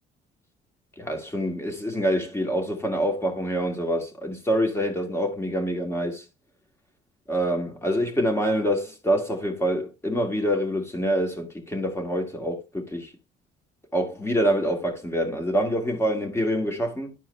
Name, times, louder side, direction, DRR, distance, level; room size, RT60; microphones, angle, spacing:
voice 1, 1.0-6.3 7.3-13.1 13.9-17.1, equal, 15° left, 2.2 m, -26 dB
11.0 x 4.6 x 3.3 m
cardioid pair, 110°, 17 cm